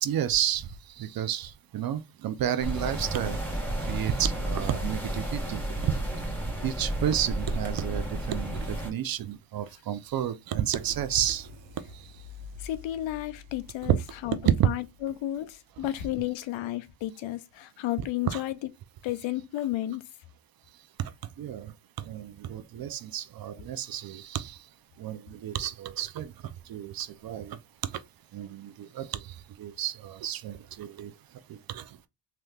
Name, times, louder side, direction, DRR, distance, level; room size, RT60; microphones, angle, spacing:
voice 1, 0.0-3.4 3.8-6.0 6.6-11.5 11.9-12.0 13.9-14.0 14.4-14.7 18.2-18.4 21.0-21.1 21.4-21.7 22.0-24.6 25.0-26.3 26.7-27.6 28.3-31.1 31.5-31.9, right 10 dB, 50° right, 0.5 m, -31 dB
sound 1, 2.6-8.9, right 1 dB, 5° left, 1.4 m, -32 dB
sound 2, 10.7-16.2, left 2 dB, 70° right, 1.0 m, -47 dB
voice 2, 12.6-14.0 14.2-14.4 14.6-18.7 19.0-20.1, left 14 dB, 75° left, 0.6 m, -32 dB
3.3 x 2.9 x 2.3 m
cardioid pair, 90°, 47 cm